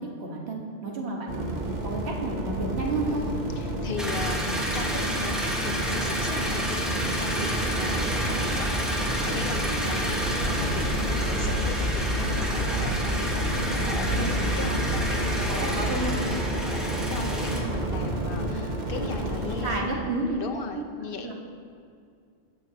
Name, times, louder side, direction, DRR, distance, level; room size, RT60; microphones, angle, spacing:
voice 1, 0.0-3.2 13.7-14.6 15.5-16.2 19.6-20.8 21.2-21.3, right 2 dB, 65° right, -1 dB, 1.6 m, -31 dB
sound 1, 1.3-19.8, right 1 dB, 45° right, 1.1 m, -30 dB
voice 2, 3.0-16.0 16.3-20.0 20.4-21.3, left 4 dB, 55° left, 5 dB, 0.9 m, -38 dB
sound 2, 4.0-17.6, equal, ahead, 1.1 m, -31 dB
sound 3, 10.2-16.2, left 2 dB, 90° left, 1.5 m, -32 dB
17.0 x 6.5 x 2.9 m, 2.3 s
omnidirectional pair, 1.2 m